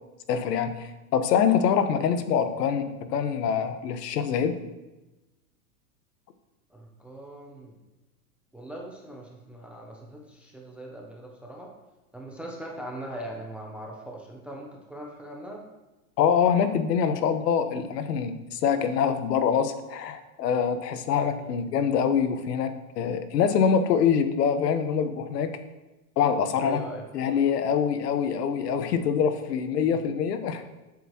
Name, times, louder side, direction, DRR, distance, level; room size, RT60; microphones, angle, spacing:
voice 1, 0.3-4.5 16.2-25.5 26.2-26.8 27.1-30.6, left 7 dB, 80° left, 9 dB, 1.2 m, -25 dB
voice 2, 6.7-7.8 8.5-11.7 12.1-15.6 21.4-21.6 26.6-27.1 29.8-30.0, right 1 dB, 5° right, -1 dB, 0.4 m, -40 dB
12.0 x 7.9 x 2.9 m, 1.1 s
supercardioid pair, 145°, 47 cm